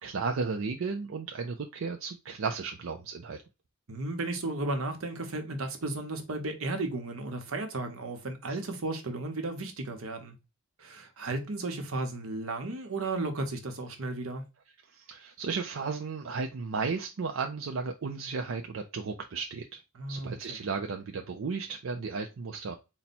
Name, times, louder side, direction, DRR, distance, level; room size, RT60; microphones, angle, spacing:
voice 1, 0.0-3.4 15.0-19.8 20.1-22.8, right 4 dB, 70° right, 0.5 m, -34 dB
voice 2, 3.9-10.4 10.8-14.4 19.9-20.6, right 2 dB, 90° right, 1.0 m, -34 dB
4.1 x 2.2 x 4.2 m
head